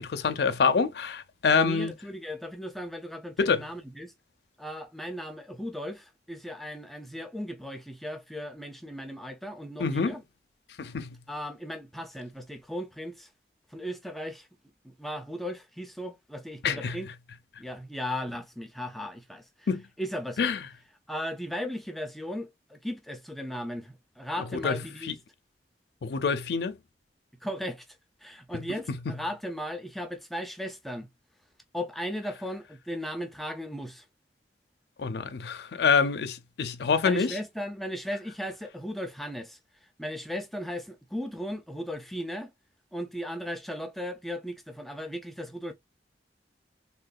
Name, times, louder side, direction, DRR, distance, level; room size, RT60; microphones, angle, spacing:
voice 1, 0.0-1.9 3.4-3.6 9.8-10.1 10.8-11.2 16.6-17.0 19.7-19.8 20.4-20.6 24.6-25.1 26.0-26.8 35.0-37.3, left 5 dB, 65° left, 0.4 m, -26 dB
voice 2, 1.5-4.1 4.6-10.2 11.3-13.3 13.7-14.5 14.8-17.1 17.6-19.7 20.0-20.5 21.1-25.1 27.4-31.1 31.7-34.1 37.0-42.5 42.9-45.7, equal, ahead, 0.4 m, -36 dB
3.7 x 2.2 x 2.3 m
head